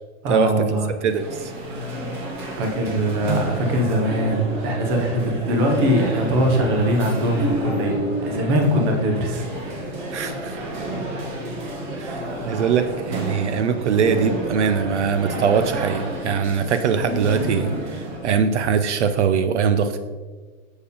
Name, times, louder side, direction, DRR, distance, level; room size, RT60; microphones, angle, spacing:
voice 1, 0.2-0.9 2.1-2.2 2.6-9.5 12.0-12.2, equal, 20° right, 2 dB, 0.6 m, -22 dB
sound 1, 1.0-18.3, right 1 dB, 35° right, 1.5 m, -30 dB
voice 2, 1.0-1.5 10.1-10.6 12.0-20.0, right 6 dB, 55° right, 10 dB, 0.5 m, -22 dB
6.9 x 4.5 x 5.2 m, 1.4 s
hypercardioid pair, 170°, 42 cm